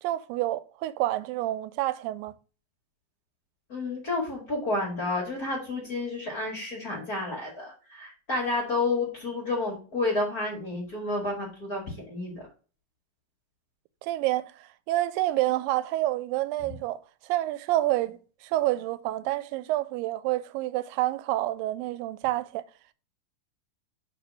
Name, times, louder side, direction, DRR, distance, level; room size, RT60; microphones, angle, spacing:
voice 1, 0.0-2.3 14.0-22.6, right 16 dB, 90° right, 2.3 m, -28 dB
voice 2, 3.7-12.5, left 2 dB, 35° left, 1.7 m, -30 dB
4.9 x 4.9 x 6.1 m
omnidirectional pair, 3.9 m